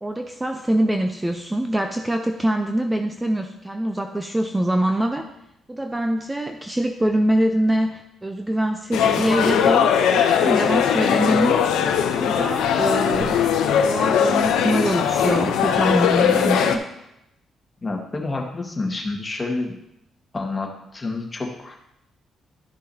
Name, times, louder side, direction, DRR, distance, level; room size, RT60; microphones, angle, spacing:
voice 1, 0.0-5.3 5.7-11.7 12.1-13.4 13.8-16.9, right 1 dB, 10° right, 5 dB, 0.6 m, -24 dB
sound 1, 8.9-16.8, left 8 dB, 90° left, 0.7 m, -20 dB
voice 2, 17.8-19.8 20.3-21.8, left 3 dB, 25° left, 1 dB, 1.7 m, -28 dB
13.0 x 6.3 x 2.8 m, 0.82 s
cardioid pair, 90°, 0 cm